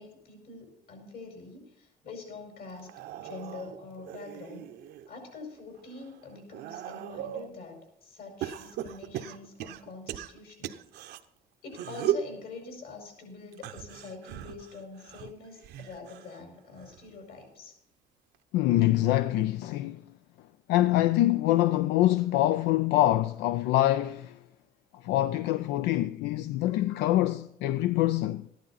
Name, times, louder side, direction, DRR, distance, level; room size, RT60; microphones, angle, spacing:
voice 1, 0.0-2.9 3.2-4.6 5.1-10.8 11.6-17.8, left 3 dB, 65° left, 5.1 m, -45 dB
sound 1, 2.7-5.1 5.6-7.5 8.4-11.2 11.7-12.3 13.5-16.4 16.8-17.2 18.3-18.4, right 10 dB, 80° right, 0.8 m, -37 dB
voice 2, 18.5-20.0 20.7-24.4 25.0-28.4, left 15 dB, 85° left, 0.5 m, -25 dB
14.0 x 11.0 x 4.1 m
cardioid pair, 110°, 17 cm